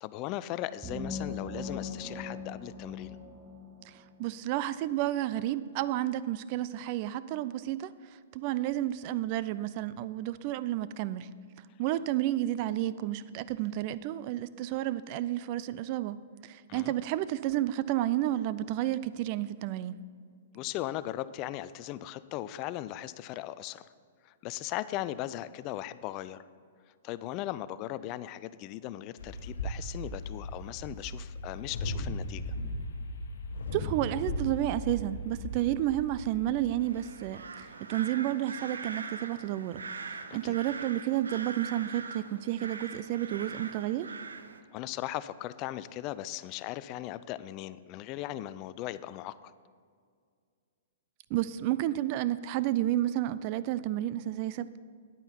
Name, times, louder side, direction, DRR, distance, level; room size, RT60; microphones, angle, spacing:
voice 1, 0.0-3.2 16.7-16.9 20.5-23.9 24.2-26.4 27.0-32.5 40.3-40.6 44.7-49.3, left 14 dB, 40° left, 15 dB, 0.4 m, -38 dB
sound 1, 0.8-4.4, left 3 dB, 15° right, 1.6 m, -40 dB
voice 2, 3.9-7.9 8.3-11.3 11.8-20.0 33.7-39.8 40.3-44.1 51.3-54.8, right 13 dB, 45° right, 16 dB, 0.4 m, -31 dB
sound 2, 29.2-37.4, left 1 dB, 70° left, 1.2 m, -37 dB
sound 3, 36.8-44.6, right 4 dB, 80° right, 0.7 m, -42 dB
9.9 x 9.0 x 4.4 m, 2.1 s
hypercardioid pair, 120°, 0 cm